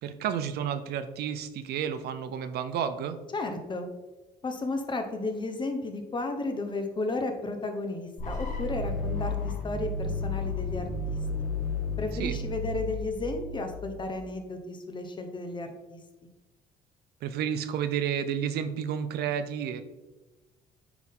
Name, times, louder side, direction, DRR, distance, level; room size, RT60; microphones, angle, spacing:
voice 1, 0.0-3.2 12.2-12.4 17.2-19.8, right 8 dB, 70° right, 10 dB, 0.7 m, -31 dB
voice 2, 3.3-3.9 4.4-11.2 12.0-16.0, left 2 dB, 25° left, 5 dB, 1.1 m, -33 dB
sound 1, 8.2-14.1, left 3 dB, 50° left, 1.6 m, -32 dB
9.2 x 4.1 x 3.8 m, 1.1 s
cardioid pair, 110°, 17 cm